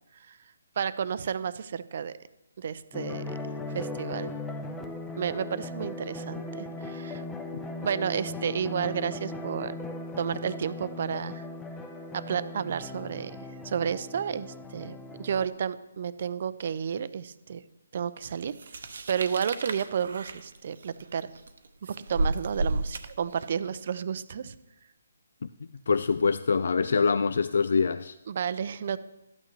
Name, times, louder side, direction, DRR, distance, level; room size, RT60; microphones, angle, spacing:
voice 1, 0.8-2.2 2.6-4.3 5.1-7.2 7.8-9.8 10.2-11.5 12.1-13.4 13.6-17.6 17.9-21.3 21.8-24.6 28.3-29.0, right 7 dB, 50° right, 0.5 m, -32 dB
sound 1, 2.9-15.5, left 2 dB, 5° left, 0.6 m, -38 dB
sound 2, 18.5-23.7, right 2 dB, 70° right, 0.9 m, -33 dB
voice 2, 25.9-28.1, left 5 dB, 65° left, 0.3 m, -24 dB
12.5 x 9.0 x 3.1 m
hypercardioid pair, 160°, 0 cm